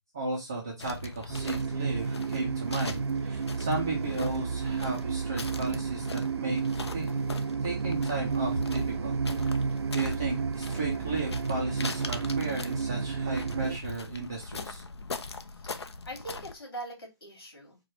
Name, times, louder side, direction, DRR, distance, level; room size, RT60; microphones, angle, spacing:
voice 1, 0.1-6.6 6.9-7.2 7.6-9.2 9.9-14.8, right 2 dB, 10° right, -4 dB, 0.3 m, -35 dB
sound 1, 0.8-16.5, left 4 dB, 85° left, 0.6 m, -42 dB
sound 2, 1.3-13.8, right 5 dB, 75° right, 0.4 m, -31 dB
voice 2, 15.5-17.8, right 1 dB, 60° left, 0 dB, 2.7 m, -43 dB
4.7 x 2.2 x 4.1 m, 0.22 s
hypercardioid pair, 170°, 14 cm